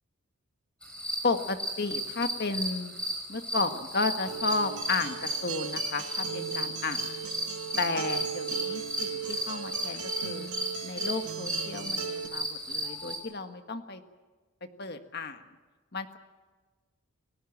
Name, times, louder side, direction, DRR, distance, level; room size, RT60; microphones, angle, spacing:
sound 1, 0.8-13.2, equal, 5° left, 5.1 m, -35 dB
voice 1, 1.2-2.9 3.3-7.1 7.8-10.5 10.8-14.0 14.8-15.4 15.9-16.2, left 3 dB, 45° left, 7 dB, 1.6 m, -33 dB
Acoustic guitar, 4.3-12.3, right 8 dB, 90° right, 2.0 m, -37 dB
29.5 x 17.0 x 7.3 m, 1.3 s
head